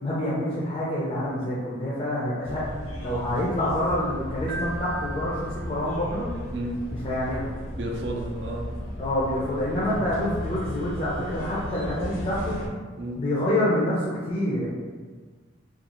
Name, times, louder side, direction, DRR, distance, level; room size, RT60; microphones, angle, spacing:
voice 1, 0.0-2.6 3.0-6.3 7.0-7.5 9.0-12.6 13.2-14.7, left 1 dB, 30° left, -8 dB, 0.4 m, -27 dB
sound 1, 2.4-12.7, left 1 dB, 80° left, 0.5 m, -35 dB
Keyboard (musical), 4.5-6.3, right 2 dB, 25° right, 0.7 m, -38 dB
voice 2, 6.5-6.8 7.8-8.7 13.0-13.2, right 1 dB, 60° right, 0 dB, 0.4 m, -32 dB
2.4 x 2.3 x 2.9 m, 1.5 s
head